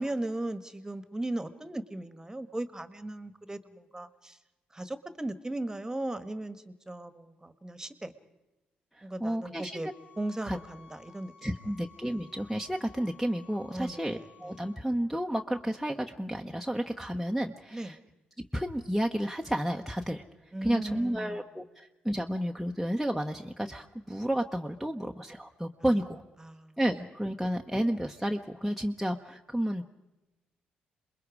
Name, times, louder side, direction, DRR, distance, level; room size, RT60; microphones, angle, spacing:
voice 1, 0.0-4.4 4.7-8.1 9.0-9.9 10.2-11.5 13.7-14.5 17.7-18.0 20.5-21.4 26.4-26.8, right 1 dB, 15° right, 12 dB, 1.5 m, -37 dB
voice 2, 8.9-9.8 10.4-10.6 11.4-18.0 18.5-20.2 20.6-26.2 26.8-29.8, equal, ahead, 1 dB, 1.1 m, -31 dB
sound 1, 9.8-14.8, left 7 dB, 75° left, 3.1 m, -56 dB
27.5 x 21.5 x 4.9 m, 0.99 s
hypercardioid pair, 50°, 4 cm